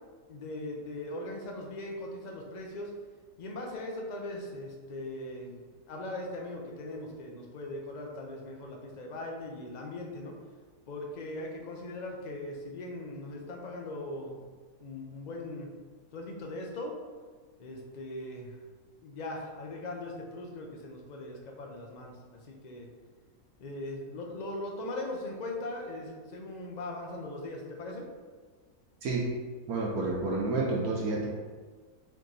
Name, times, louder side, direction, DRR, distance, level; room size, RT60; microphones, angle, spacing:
voice 1, 0.3-2.9 3.4-10.3 10.9-14.4 14.8-15.7 16.1-16.9 17.6-18.5 19.0-22.9 23.6-28.1, left 1 dB, 70° left, 0 dB, 0.4 m, -40 dB
voice 2, 29.0-29.3 29.7-31.3, right 3 dB, 70° right, -3 dB, 1.1 m, -29 dB
4.5 x 3.0 x 3.9 m, 1.5 s
omnidirectional pair, 1.6 m